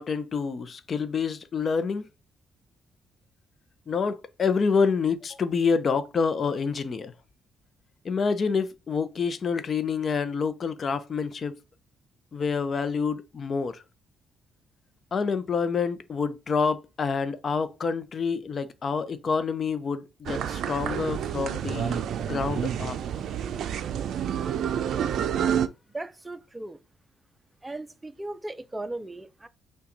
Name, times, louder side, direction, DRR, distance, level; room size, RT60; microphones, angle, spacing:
voice 1, 0.0-2.1 3.9-7.1 8.0-11.5 12.3-13.8 15.1-23.0, left 5 dB, 45° left, 0.6 m, -27 dB
sound 1, 20.3-25.7, right 9 dB, 70° right, 0.4 m, -29 dB
voice 2, 25.9-26.8 27.6-29.5, right 2 dB, 15° right, 0.5 m, -37 dB
5.8 x 2.3 x 3.9 m
cardioid pair, 90°, 0 cm